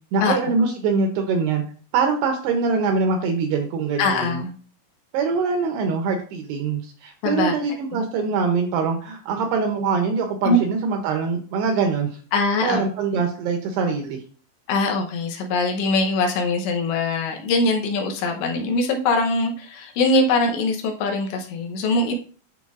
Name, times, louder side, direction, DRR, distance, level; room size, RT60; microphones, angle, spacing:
voice 1, 0.1-1.6 1.9-4.4 5.1-12.1 12.6-14.2, right 5 dB, 80° right, 4 dB, 2.4 m, -23 dB
voice 2, 4.0-4.5 7.2-7.6 7.9-8.0 10.5-10.6 12.3-12.8 14.7-22.1, left 2 dB, 80° left, 3 dB, 3.0 m, -22 dB
11.0 x 3.9 x 2.4 m, 0.42 s
omnidirectional pair, 5.4 m